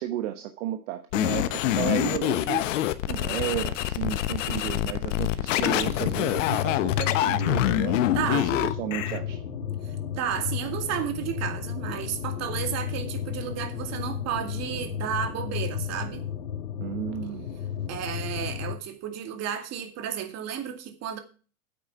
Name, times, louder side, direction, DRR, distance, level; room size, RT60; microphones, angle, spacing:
voice 1, 0.0-2.7 3.1-9.4 16.8-17.5, right 12 dB, 55° right, 1.2 m, -33 dB
sound 1, 1.1-9.2, left 13 dB, 55° left, 1.1 m, -26 dB
sound 2, 5.8-18.8, left 8 dB, 70° left, 2.0 m, -33 dB
voice 2, 8.1-8.5 9.8-16.3 17.9-21.2, right 9 dB, 35° right, 2.3 m, -32 dB
9.1 x 8.6 x 5.8 m
figure-of-eight pair, 95°, 44 cm